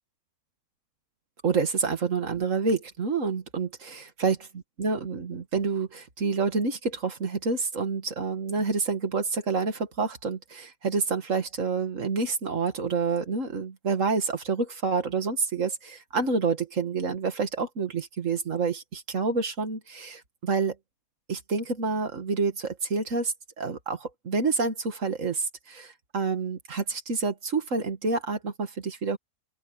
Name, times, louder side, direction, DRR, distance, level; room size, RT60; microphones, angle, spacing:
voice 1, 1.4-4.4 4.8-20.8 21.3-29.2, right 4 dB, 55° right, 2.2 m, -28 dB
open air
omnidirectional pair, 1.6 m